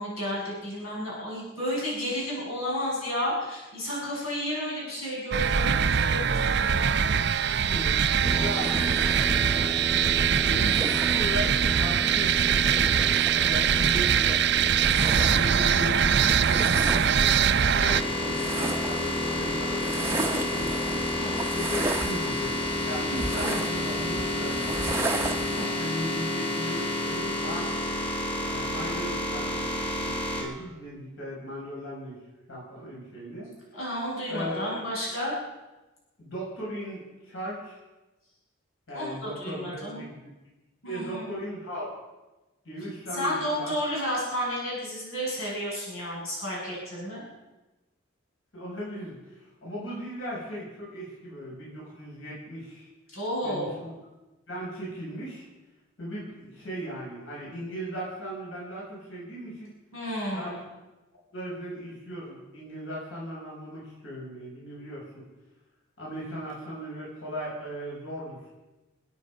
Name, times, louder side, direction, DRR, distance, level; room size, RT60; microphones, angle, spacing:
voice 1, 0.0-6.6 17.7-18.0 21.2-21.3 25.5-25.7 33.7-35.4 38.9-40.0 40.8-41.3 43.1-47.3 53.1-53.8 59.9-60.6, equal, 80° left, -5 dB, 7.1 m, -32 dB
sound 1, 5.3-18.0, right 7 dB, 55° right, 0.5 m, -23 dB
voice 2, 7.7-9.1 10.3-14.4 15.2-17.4 17.7-20.9 21.5-22.5 22.8-25.2 25.8-27.8 28.4-29.7 30.0-32.2 32.5-33.5 34.3-34.8 36.2-37.8 38.9-40.2 40.8-41.9 42.6-43.7 48.5-52.9 53.4-53.9 54.5-55.4 56.0-59.7 60.3-60.5 61.3-65.2 66.0-68.4, equal, 60° left, -6 dB, 6.8 m, -37 dB
sound 2, 8.2-25.7, right 2 dB, 10° right, 0.7 m, -33 dB
sound 3, 17.0-30.4, left 2 dB, 25° left, 4.3 m, -30 dB
27.0 x 9.6 x 5.3 m, 1.1 s
head